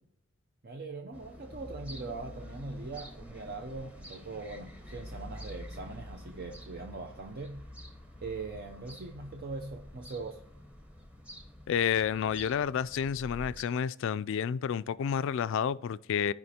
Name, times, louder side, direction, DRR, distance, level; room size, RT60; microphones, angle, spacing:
voice 1, 0.6-7.6 8.2-10.4, right 3 dB, 50° right, 0.6 m, -41 dB
sound 1, 1.1-13.6, equal, 5° right, 1.0 m, -47 dB
voice 2, 11.7-16.3, left 7 dB, 65° left, 0.3 m, -30 dB
14.5 x 5.1 x 2.8 m
head